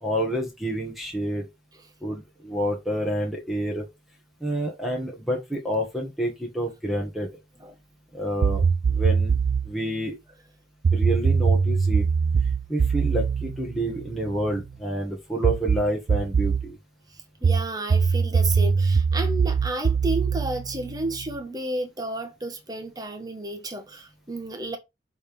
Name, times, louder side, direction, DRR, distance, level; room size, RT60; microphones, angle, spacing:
voice 1, 0.0-1.4 2.0-3.9 4.4-7.3 8.1-8.6 8.9-9.3 9.6-10.2 10.9-12.0 12.7-16.8, right 1 dB, ahead, 1.7 m, -28 dB
sound 1, 8.4-9.7 10.8-14.6 15.4-16.7 17.4-21.4, right 5 dB, 65° right, 0.4 m, -22 dB
voice 2, 17.1-24.8, right 2 dB, 20° right, 1.4 m, -32 dB
7.0 x 3.5 x 5.4 m
head